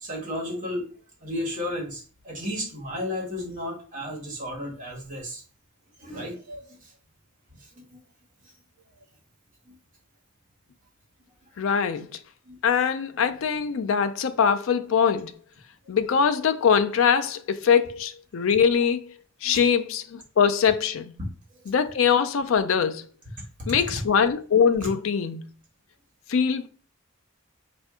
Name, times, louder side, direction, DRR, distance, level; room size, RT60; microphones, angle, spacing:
voice 1, 0.0-0.9 1.2-5.4 6.0-6.9 7.7-8.0 9.7-9.8 12.4-12.6 19.4-19.6 21.2-21.3 24.8-24.9, left 1 dB, 40° right, 1.4 m, -33 dB
voice 2, 11.6-12.2 12.6-15.3 15.9-19.1 19.4-21.1 21.7-23.1 23.7-25.4 26.3-26.7, left 7 dB, 65° left, 0.4 m, -22 dB
4.3 x 2.5 x 3.6 m
head